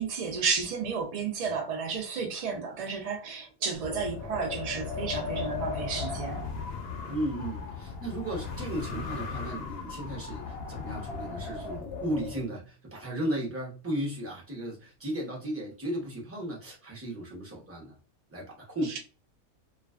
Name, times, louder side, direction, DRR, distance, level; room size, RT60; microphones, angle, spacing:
voice 1, 0.0-6.4 18.8-19.0, right 5 dB, 65° right, 0.3 m, -32 dB
Wind, 3.7-12.4, left 5 dB, 60° left, 0.6 m, -36 dB
voice 2, 7.1-18.0 18.3-19.0, right 1 dB, 15° right, 0.5 m, -35 dB
2.4 x 2.3 x 2.3 m
omnidirectional pair, 1.4 m